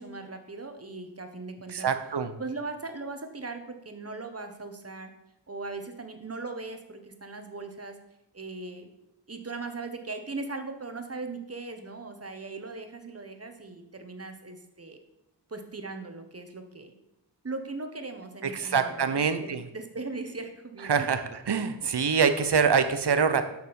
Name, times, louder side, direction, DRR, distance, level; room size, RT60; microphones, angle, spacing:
voice 1, 0.0-1.9 2.4-5.1 5.5-8.0 8.3-8.9 9.3-15.0 15.5-16.9 17.4-21.1, right 3 dB, 35° right, 6 dB, 1.3 m, -39 dB
voice 2, 1.7-2.3 18.5-19.6 20.9-21.2 21.5-23.5, right 6 dB, 60° right, 9 dB, 0.9 m, -24 dB
7.0 x 6.1 x 7.0 m, 0.86 s
wide cardioid pair, 75°, 44 cm